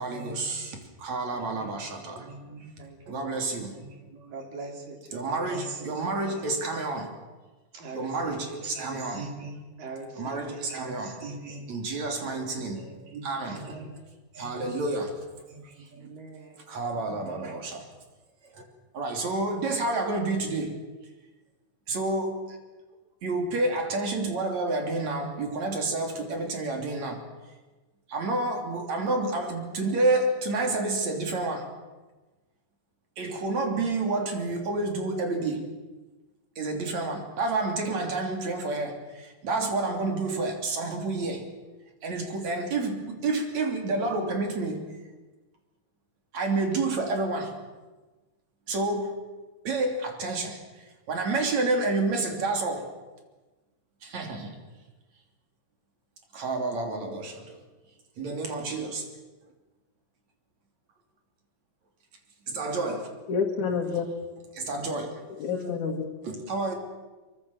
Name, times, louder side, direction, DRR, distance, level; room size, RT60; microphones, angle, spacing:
voice 1, 0.0-2.7 3.1-4.4 5.1-7.1 7.9-9.6 10.2-12.8 13.1-13.9 14.3-15.1 15.5-16.1 16.7-17.8 18.5-18.6 18.9-20.7 21.9-22.6 23.2-27.2 28.1-31.7 33.2-35.6 36.6-41.5 42.0-44.8 46.3-47.5 48.7-49.2 49.6-50.6 51.1-52.9 54.0-54.6 56.3-57.6 58.2-59.1 62.5-63.1 64.5-65.2 65.5-66.0 66.2-66.7, right 2 dB, 55° right, 3 dB, 4.3 m, -29 dB
voice 2, 1.3-1.7 2.8-3.6 4.3-5.5 5.8-6.0 7.7-8.6 9.8-10.7 12.2-13.0 13.4-14.0 14.6-15.1 16.0-16.7, right 3 dB, 75° right, 3 dB, 5.1 m, -43 dB
voice 3, 63.3-64.1 65.4-66.1, left 6 dB, 65° left, 0 dB, 3.3 m, -28 dB
24.0 x 23.5 x 7.2 m, 1.2 s
omnidirectional pair, 4.0 m